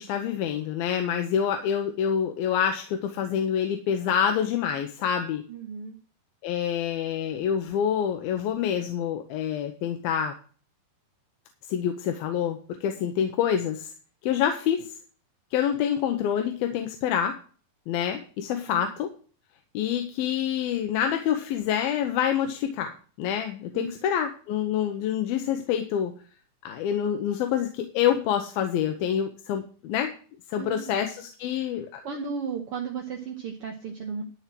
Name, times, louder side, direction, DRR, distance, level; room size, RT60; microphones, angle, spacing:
voice 1, 0.0-5.4 6.4-10.3 11.7-13.9 14.2-14.9 15.5-17.3 17.9-19.1 19.7-22.9 23.2-26.1 26.6-30.1 30.5-32.0, left 9 dB, 85° left, 6 dB, 2.7 m, -27 dB
voice 2, 5.5-6.0 18.5-18.9 23.7-24.1 30.6-30.9 31.6-31.7 32.0-34.2, right 6 dB, 70° right, 2 dB, 1.3 m, -35 dB
13.0 x 4.5 x 7.5 m, 0.40 s
omnidirectional pair, 4.3 m